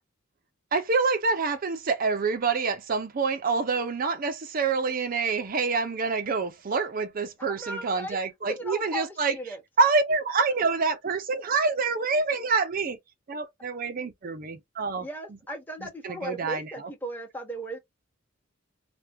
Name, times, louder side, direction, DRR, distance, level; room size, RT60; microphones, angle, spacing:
voice 1, 0.7-9.3 9.8-13.0 13.3-15.1 16.0-16.7, right 4 dB, 45° right, 0.5 m, -26 dB
voice 2, 7.4-8.2 8.5-9.6 15.0-17.8, right 1 dB, 10° left, 0.9 m, -37 dB
3.3 x 2.2 x 2.7 m
head